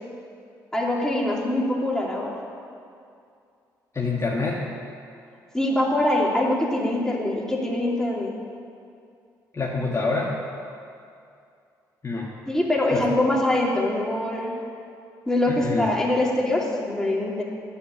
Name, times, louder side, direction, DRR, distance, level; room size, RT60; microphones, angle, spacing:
voice 1, 0.7-2.4 5.5-8.3 12.5-14.5 15.3-17.4, left 1 dB, 5° left, -3 dB, 2.9 m, -23 dB
voice 2, 3.9-4.6 9.5-10.3 12.0-12.3 12.9-13.0 15.5-15.9, left 3 dB, 30° left, -4 dB, 1.8 m, -26 dB
9.8 x 7.1 x 8.5 m, 2.4 s
hypercardioid pair, 50°, 9 cm